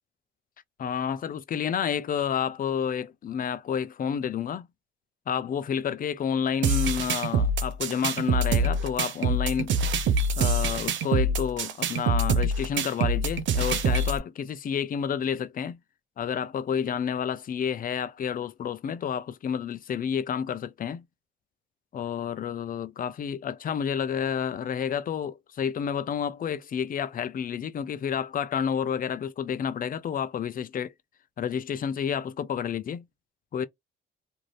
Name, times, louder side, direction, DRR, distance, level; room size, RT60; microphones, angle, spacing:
voice 1, 0.8-4.7 5.3-9.8 10.3-15.8 16.2-21.0 21.9-30.9 31.4-33.0 33.5-33.7, left 8 dB, 45° left, 0.5 m, -30 dB
sound 1, 6.6-14.2, right 3 dB, 70° right, 0.6 m, -25 dB
2.6 x 2.5 x 3.1 m
cardioid pair, 90°, 20 cm